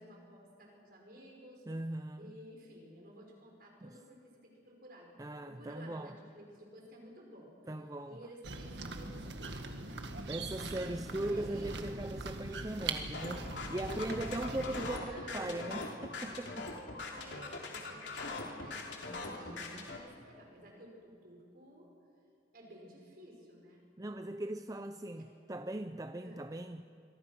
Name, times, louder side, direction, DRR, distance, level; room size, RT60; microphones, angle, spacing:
voice 1, 0.0-1.6 2.2-5.2 5.4-7.6 8.1-10.1 10.7-11.8 14.4-14.7 14.9-15.9 17.1-21.9 22.5-23.8 25.1-25.3 26.2-26.5, equal, 55° right, 5.9 m, -53 dB
voice 2, 1.7-2.3 3.8-4.0 5.2-6.1 7.7-8.2 10.0-15.1 15.3-16.7 19.5-19.9 24.0-26.8, right 1 dB, 20° right, 0.5 m, -39 dB
sound 1, 8.4-15.0, right 3 dB, 80° right, 1.8 m, -41 dB
sound 2, 13.1-20.0, left 3 dB, 80° left, 3.1 m, -42 dB
26.0 x 23.5 x 6.1 m
head